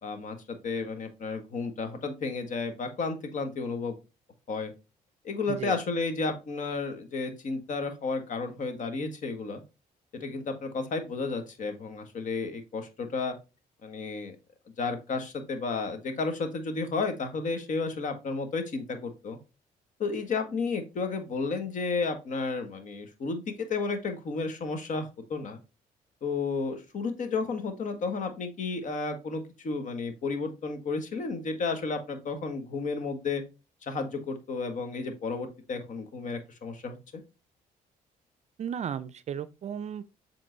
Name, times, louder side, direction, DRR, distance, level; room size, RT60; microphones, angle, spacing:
voice 1, 0.0-4.0 4.5-4.7 5.2-9.6 10.1-13.3 13.8-14.4 14.8-19.4 20.0-25.6 26.2-33.4 33.8-37.2, left 4 dB, 55° left, 1.5 m, -32 dB
voice 2, 38.6-40.1, right 8 dB, 50° right, 0.5 m, -35 dB
7.7 x 3.8 x 3.9 m
cardioid pair, 95°, 15 cm